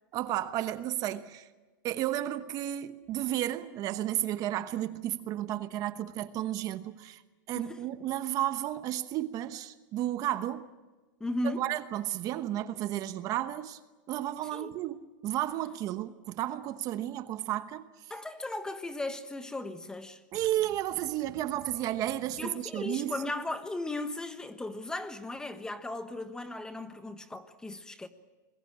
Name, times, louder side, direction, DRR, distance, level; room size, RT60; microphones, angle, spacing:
voice 1, 0.1-1.5 1.8-7.2 7.5-10.7 11.4-13.8 14.1-15.0 15.2-17.9 20.3-23.1, right 13 dB, 35° right, 1.0 m, -32 dB
voice 2, 11.2-11.6 14.5-14.7 18.1-20.2 22.4-28.1, left 2 dB, 5° left, 1.2 m, -36 dB
26.5 x 20.5 x 8.8 m
supercardioid pair, 150°, 11 cm